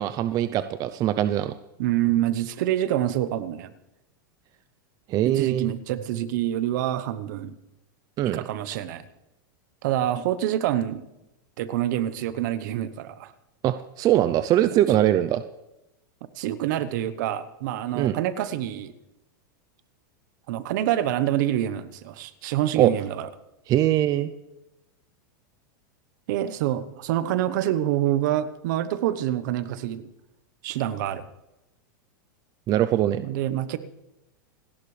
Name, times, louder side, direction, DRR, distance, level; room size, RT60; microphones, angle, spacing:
voice 1, 0.0-1.5 5.1-5.7 8.2-8.4 13.6-15.4 17.9-18.2 22.8-22.9 23.7-24.3 32.7-33.3, right 12 dB, 35° right, 11 dB, 0.6 m, -22 dB
voice 2, 1.8-3.7 5.2-7.5 8.2-9.0 9.8-11.0 11.6-13.3 14.9-15.0 16.4-18.9 20.5-23.3 26.3-30.0 30.6-31.3 33.2-33.8, right 12 dB, 65° right, 14 dB, 1.1 m, -26 dB
28.0 x 11.0 x 3.3 m, 0.94 s
supercardioid pair, 135°, 11 cm